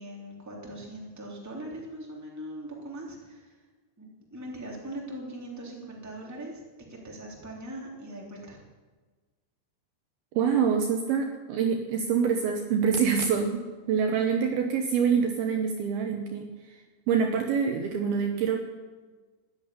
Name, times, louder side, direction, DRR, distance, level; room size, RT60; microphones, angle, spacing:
voice 1, 0.0-3.6 4.0-6.6 6.9-8.6, right 1 dB, 5° right, -2 dB, 2.1 m, -41 dB
voice 2, 10.3-16.8 17.1-18.6, right 6 dB, 90° right, 4 dB, 2.1 m, -26 dB
13.0 x 10.5 x 10.0 m, 1.3 s
omnidirectional pair, 5.9 m